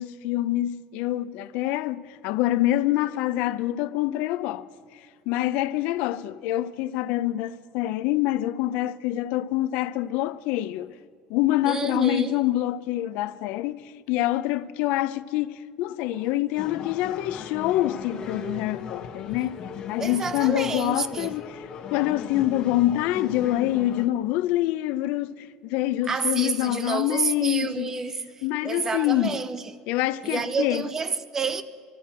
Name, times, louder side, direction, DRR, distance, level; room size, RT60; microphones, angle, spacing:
voice 1, 0.0-4.7 5.3-10.9 11.3-19.6 19.9-21.6 21.9-27.9 28.4-29.4 29.9-30.9, left 15 dB, 60° left, 0.5 m, -26 dB
voice 2, 11.7-12.4 16.1-16.2 20.0-21.3 26.0-29.6 30.2-31.6, right 5 dB, 15° right, 0.6 m, -29 dB
sound 1, 16.6-24.1, left 6 dB, 30° left, 1.1 m, -38 dB
24.5 x 13.5 x 4.4 m
cardioid pair, 170°, 3 cm